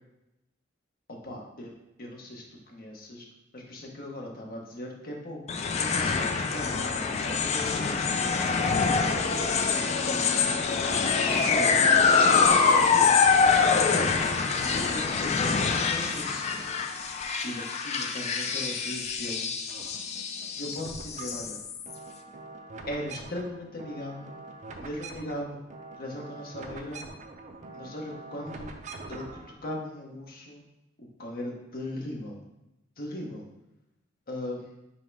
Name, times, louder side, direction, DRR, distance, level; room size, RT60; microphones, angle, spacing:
voice 1, 1.1-1.7 2.0-3.3 3.5-5.4 5.8-8.4 9.0-9.4 9.8-10.3 11.2-11.8 12.1-13.1 13.6-14.1 14.6-16.5 17.0-19.5 20.6-21.6 22.9-24.3 24.8-25.6 26.0-27.0 27.7-28.7 29.1-29.3 29.6-30.6 31.0-32.4 33.0-33.5 34.3-34.7, left 1 dB, 50° left, 0 dB, 0.9 m, -38 dB
sound 1, 5.5-21.9, left 5 dB, 35° left, 0.3 m, -25 dB
sound 2, 16.1-17.7 18.0-19.3 19.6-29.5, right 3 dB, 40° right, 0.4 m, -46 dB
5.4 x 2.1 x 4.6 m, 0.91 s
head